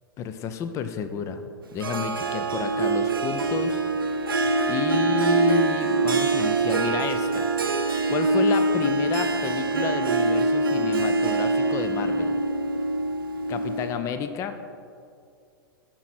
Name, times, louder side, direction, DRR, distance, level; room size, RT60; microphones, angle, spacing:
voice 1, 0.2-3.8 4.7-7.5 8.1-12.3 13.5-14.6, left 7 dB, 25° left, 9 dB, 0.5 m, -31 dB
Harp, 1.8-14.0, right 3 dB, 80° right, 0.7 m, -24 dB
11.0 x 6.0 x 4.3 m, 2.4 s
figure-of-eight pair, 105°, 12 cm